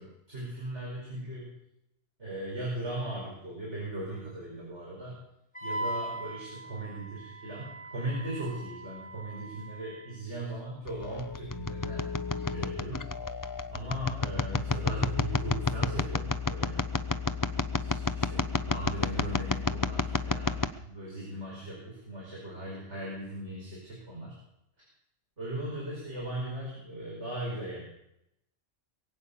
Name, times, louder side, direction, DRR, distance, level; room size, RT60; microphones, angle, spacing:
voice 1, 0.0-1.5 2.2-5.2 5.6-12.0 12.5-13.1 13.7-16.8 17.7-24.4 25.4-27.9, right 1 dB, 70° right, -5 dB, 5.5 m, -38 dB
Wind instrument woodwind instrument, 5.6-10.2, right 1 dB, 5° left, 0.9 m, -40 dB
sound 1, 10.9-20.7, left 4 dB, 35° left, 0.3 m, -31 dB
22.0 x 8.6 x 7.0 m, 0.82 s
omnidirectional pair, 1.2 m